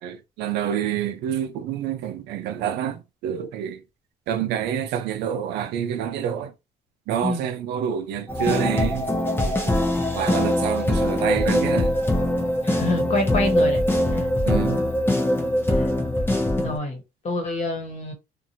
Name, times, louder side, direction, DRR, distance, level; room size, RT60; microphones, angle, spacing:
voice 1, 0.0-3.8 4.3-6.5 7.1-9.8 10.1-11.9 14.5-14.8, right 9 dB, 85° right, 0.5 m, -28 dB
sound 1, 8.3-16.8, left 1 dB, 15° left, 0.7 m, -22 dB
voice 2, 12.6-13.8 14.1-14.3 15.7-15.8 16.6-18.1, left 2 dB, 40° left, 1.3 m, -27 dB
2.8 x 2.5 x 2.7 m
cardioid pair, 110°, 17 cm